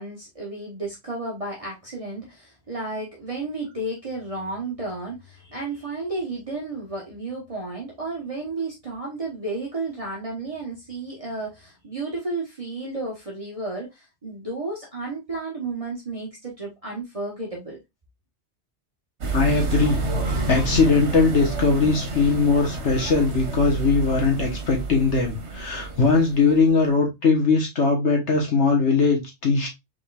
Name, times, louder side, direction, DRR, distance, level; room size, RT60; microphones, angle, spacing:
voice 1, 0.0-17.8, right 2 dB, 30° right, 1.4 m, -32 dB
sound 1, 19.2-26.7, right 3 dB, 75° right, 1.4 m, -29 dB
voice 2, 19.3-29.7, left 4 dB, 80° left, 1.7 m, -20 dB
5.1 x 3.8 x 2.4 m
omnidirectional pair, 1.2 m